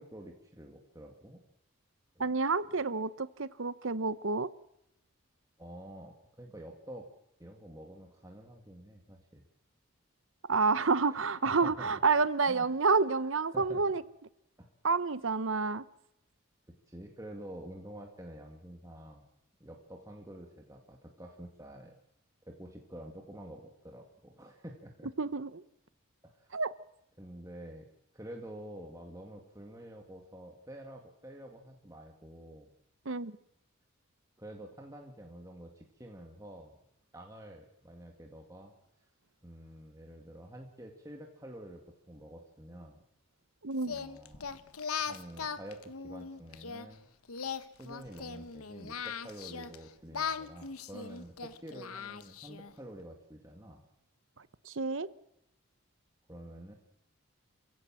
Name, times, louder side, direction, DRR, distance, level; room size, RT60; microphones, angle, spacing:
voice 1, 0.0-1.4 5.6-7.1 7.4-9.4 11.1-11.9 12.5-12.7 13.1-13.3 13.5-13.8 14.6-14.7 16.9-19.3 19.6-21.9 22.4-25.1 26.2-26.6 27.2-27.9 28.1-32.7 34.4-36.8 37.1-38.7 39.4-43.0 43.9-44.6 45.1-47.1 47.8-53.8 56.3-56.7, right 1 dB, 15° right, 1 dB, 2.1 m, -48 dB
voice 2, 2.2-4.5 10.5-14.0 14.8-15.8 25.2-25.6 26.5-26.7 33.1-33.3 43.6-44.0 54.6-55.1, right 4 dB, 65° right, 16 dB, 0.9 m, -29 dB
Singing, 43.8-46.9 47.3-49.8 50.1-52.7, left 6 dB, 90° left, 1.1 m, -39 dB
27.0 x 16.0 x 7.5 m, 0.82 s
head